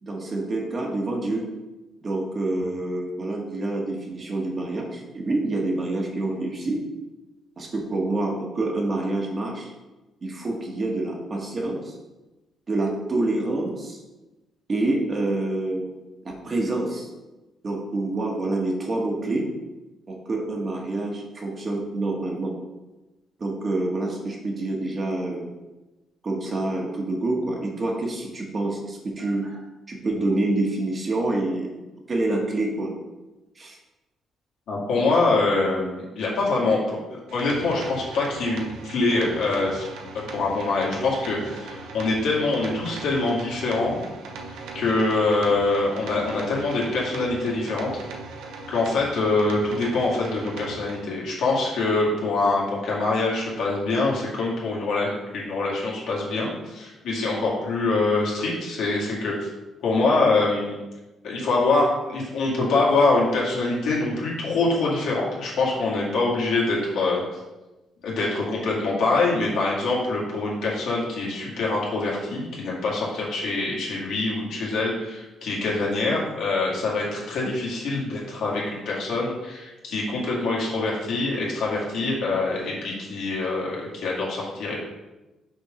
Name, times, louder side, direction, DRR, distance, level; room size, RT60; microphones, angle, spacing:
voice 1, 0.0-1.5 2.0-6.8 7.6-9.7 10.2-11.9 12.7-14.0 14.7-15.9 16.2-17.1 17.6-19.5 20.1-22.5 23.4-25.5 26.2-31.7 32.1-32.9 33.6-33.8 77.4-77.5, right 2 dB, 35° right, -1 dB, 1.5 m, -27 dB
voice 2, 34.7-36.8 37.1-39.8 40.1-44.0 44.5-47.9 48.7-59.5 59.8-60.7 61.2-67.4 68.0-84.8, left 3 dB, 75° left, -4 dB, 2.1 m, -24 dB
sound 1, 37.3-51.0, right 3 dB, 90° right, 0.8 m, -39 dB
5.9 x 3.7 x 5.1 m, 1.1 s
cardioid pair, 90°, 0 cm